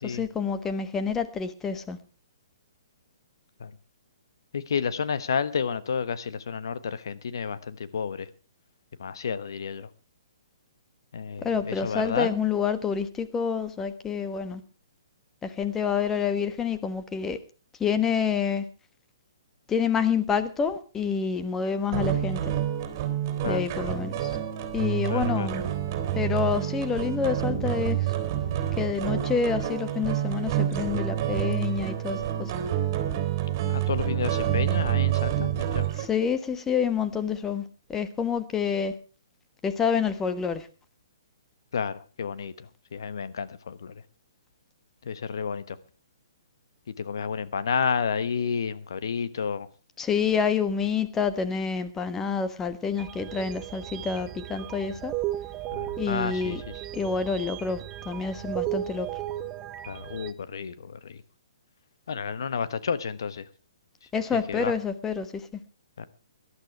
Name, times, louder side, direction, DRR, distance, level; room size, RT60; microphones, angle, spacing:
voice 1, 0.0-2.0 11.4-14.6 15.4-17.4 17.8-18.6 19.7-22.4 23.4-24.3 24.7-25.7 26.1-28.0 28.8-32.5 36.0-37.6 37.9-38.9 39.6-40.7 50.0-55.1 56.0-56.6 56.9-57.8 58.0-59.1 64.1-65.4, left 6 dB, 15° left, 1.3 m, -28 dB
voice 2, 4.5-8.3 9.0-9.9 11.1-12.4 23.4-23.6 25.0-25.5 33.7-35.9 41.7-44.0 45.0-45.8 47.0-49.7 55.7-56.6 59.9-61.2 62.1-63.5 64.5-64.7 66.0-66.1, left 6 dB, 70° left, 1.2 m, -31 dB
sound 1, 21.9-36.0, right 11 dB, 40° right, 3.3 m, -28 dB
sound 2, 53.0-60.3, right 13 dB, 20° right, 0.8 m, -35 dB
18.0 x 11.5 x 4.7 m
hypercardioid pair, 135°, 2 cm